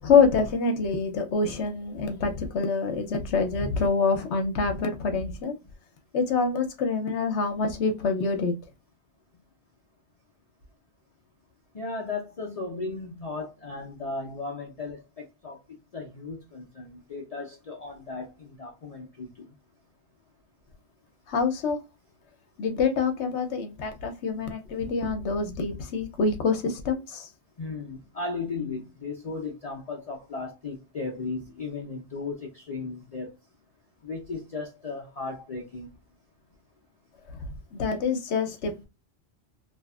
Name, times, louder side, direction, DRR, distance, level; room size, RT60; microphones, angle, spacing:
voice 1, 0.0-5.6 6.1-8.5 21.3-21.8 22.6-27.3 37.7-38.9, left 4 dB, 75° left, 1.0 m, -26 dB
voice 2, 11.7-15.6 15.9-19.5 27.6-33.3 34.0-35.9, left 3 dB, 40° left, 0.6 m, -36 dB
2.8 x 2.4 x 2.3 m
omnidirectional pair, 1.2 m